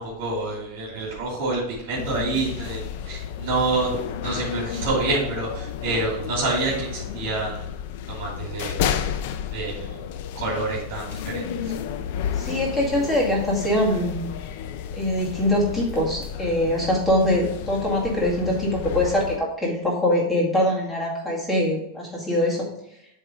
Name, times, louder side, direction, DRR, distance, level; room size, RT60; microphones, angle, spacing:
voice 1, 0.0-2.8 3.0-3.9 4.2-7.7 8.1-8.8 9.5-10.0 10.3-11.5, right 3 dB, 60° right, -4 dB, 2.7 m, -27 dB
sound 1, 1.9-19.4, left 8 dB, 60° left, 0.6 m, -32 dB
voice 2, 12.4-14.3 14.9-22.7, left 1 dB, 10° left, -4 dB, 2.2 m, -23 dB
7.7 x 3.7 x 5.0 m, 0.79 s
supercardioid pair, 135°, 0 cm